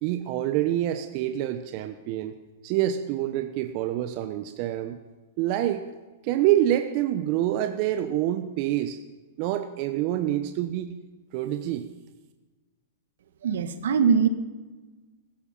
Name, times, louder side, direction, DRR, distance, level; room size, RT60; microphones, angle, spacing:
voice 1, 0.0-2.3 2.6-5.0 5.4-5.8 6.2-9.0 9.4-10.9 11.3-11.9, right 12 dB, 45° right, 8 dB, 1.0 m, -26 dB
voice 2, 13.4-14.3, right 6 dB, 70° right, 10 dB, 1.5 m, -21 dB
16.0 x 14.0 x 5.7 m, 1.2 s
hypercardioid pair, 115°, 0 cm